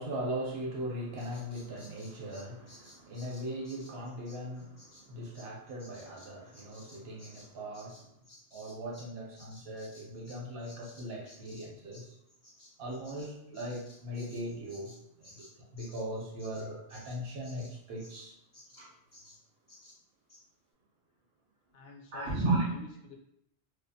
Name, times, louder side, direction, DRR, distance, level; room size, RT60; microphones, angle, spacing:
voice 1, 0.0-8.1 8.5-12.1 12.8-18.4 18.8-18.9 22.1-22.7, right 1 dB, 70° right, -2 dB, 0.8 m, -38 dB
Bird vocalization bird call bird song, 1.2-9.1 9.4-18.3 18.5-18.9 19.1-19.4 19.7-20.0 20.3-20.4, left 1 dB, 25° left, 0.4 m, -56 dB
voice 2, 21.7-23.1, left 4 dB, 70° left, -1 dB, 0.7 m, -49 dB
2.4 x 2.2 x 2.6 m, 0.80 s
omnidirectional pair, 1.1 m